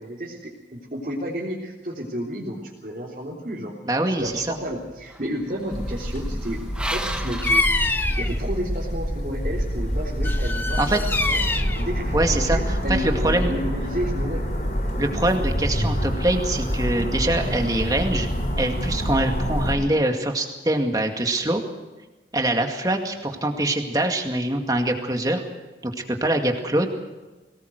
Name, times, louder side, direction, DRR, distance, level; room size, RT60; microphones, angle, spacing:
voice 1, 0.0-3.7 4.2-11.4 11.8-14.4, equal, 45° right, -5 dB, 3.7 m, -32 dB
voice 2, 3.9-4.6 10.8-11.0 12.1-13.5 15.0-18.3 18.6-21.6 22.3-25.4 25.8-25.9 26.2-26.9, right 1 dB, 20° right, 3 dB, 2.2 m, -24 dB
sound 1, 4.2-8.5, right 1 dB, 5° right, 1.3 m, -36 dB
sound 2, 5.7-19.8, equal, 45° left, 4.7 m, -26 dB
Bird vocalization bird call bird song, 7.4-8.4 10.2-11.8, left 2 dB, 10° left, 1.0 m, -24 dB
22.5 x 19.5 x 6.6 m, 1.1 s
head